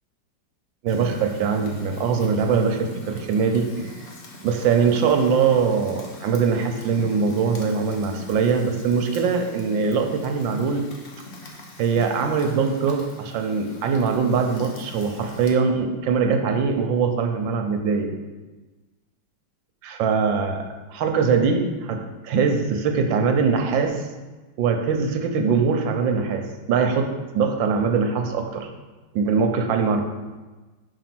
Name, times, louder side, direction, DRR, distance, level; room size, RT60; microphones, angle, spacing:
voice 1, 0.8-3.9 4.4-10.8 11.8-18.1 19.8-20.6 20.9-24.0 24.6-27.1 27.3-28.7 29.1-30.0, right 5 dB, 85° right, 4 dB, 1.5 m, -22 dB
Fire, 0.9-15.5, left 1 dB, 45° left, 1.0 m, -42 dB
5.3 x 5.0 x 6.0 m, 1.2 s
omnidirectional pair, 2.0 m